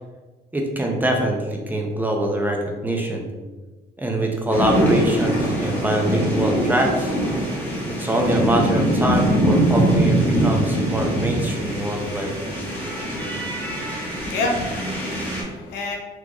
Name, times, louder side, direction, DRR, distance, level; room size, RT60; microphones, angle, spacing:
voice 1, 0.5-3.3 4.0-7.1 7.9-12.3, right 1 dB, 10° right, 1 dB, 0.5 m, -23 dB
sound 1, 4.5-15.4, right 1 dB, 10° left, 1.1 m, -22 dB
voice 2, 14.2-16.0, left 2 dB, 80° left, 1 dB, 0.7 m, -28 dB
3.7 x 3.0 x 2.3 m, 1.3 s
cardioid pair, 110°, 17 cm